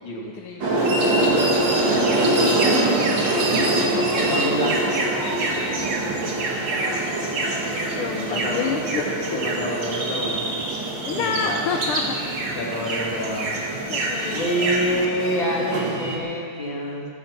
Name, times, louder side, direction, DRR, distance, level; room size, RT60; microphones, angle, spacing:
voice 1, 0.2-0.7 3.6-4.4 6.9-7.3 7.9-9.1 11.0-12.2 13.9-14.9, left 5 dB, 80° left, 3 dB, 1.8 m, -30 dB
sound 1, 0.6-16.2, right 2 dB, 60° right, 2.6 m, -25 dB
sound 2, 0.8-15.0, right 2 dB, 85° right, 2.7 m, -28 dB
voice 2, 1.9-2.6 4.2-4.8 8.3-8.7 9.3-10.4 11.1-11.7 12.6-13.6 14.3-17.1, equal, 60° left, -3 dB, 3.4 m, -27 dB
14.5 x 14.0 x 5.9 m, 2.3 s
omnidirectional pair, 2.4 m